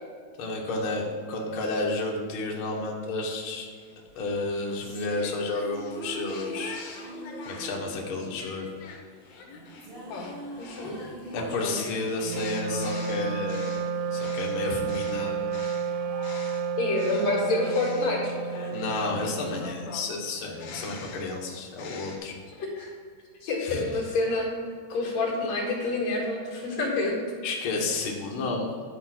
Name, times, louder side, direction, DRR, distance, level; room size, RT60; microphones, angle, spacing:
voice 1, 0.4-3.7 4.1-6.8 7.4-8.7 10.8-11.0 11.3-13.7 14.1-15.4 18.7-22.3 23.6-24.0 27.4-29.0, left 3 dB, 85° left, -1 dB, 1.1 m, -31 dB
sound 1, 3.8-7.9 8.4-16.7 17.0-22.2, left 4 dB, 65° left, 2.8 m, -44 dB
sound 2, 4.3-14.7, right 2 dB, 30° right, 1.0 m, -43 dB
voice 2, 10.6-10.9 16.8-18.4 22.6-22.9 23.4-24.5 24.9-27.1, left 2 dB, 45° left, -4 dB, 3.0 m, -28 dB
Wind instrument woodwind instrument, 12.2-20.0, right 6 dB, 85° right, 2.8 m, -31 dB
11.5 x 5.3 x 4.3 m, 2.1 s
omnidirectional pair, 4.7 m